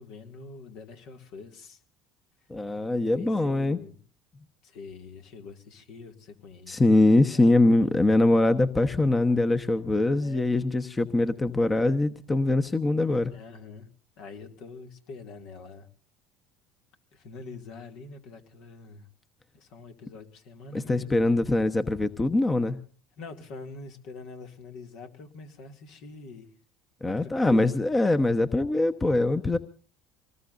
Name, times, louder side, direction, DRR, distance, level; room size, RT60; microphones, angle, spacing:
voice 1, 0.0-1.8 2.8-4.0 4.6-6.8 7.2-7.5 7.8-7.9 10.1-10.5 13.3-13.9 14.2-15.9 17.1-19.1 19.5-21.1 23.2-26.5 27.0-27.9, left 4 dB, 65° left, 4 dB, 2.4 m, -45 dB
voice 2, 2.5-3.8 6.7-13.3 20.9-22.8 27.0-29.6, left 2 dB, 20° left, 10 dB, 1.1 m, -23 dB
25.0 x 19.5 x 2.6 m, 0.41 s
hypercardioid pair, 75°, 0 cm